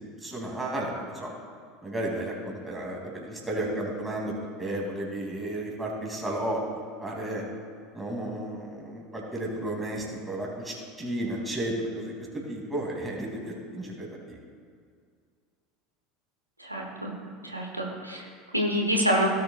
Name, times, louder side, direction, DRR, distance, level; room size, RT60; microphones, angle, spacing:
voice 1, 0.2-1.3 1.8-7.4 7.9-14.4, right 1 dB, 10° right, -2 dB, 2.6 m, -33 dB
voice 2, 16.6-17.1 17.4-18.3 18.5-19.3, equal, 90° right, -1 dB, 1.1 m, -27 dB
17.0 x 7.5 x 2.4 m, 2.1 s
figure-of-eight pair, 75°, 0 cm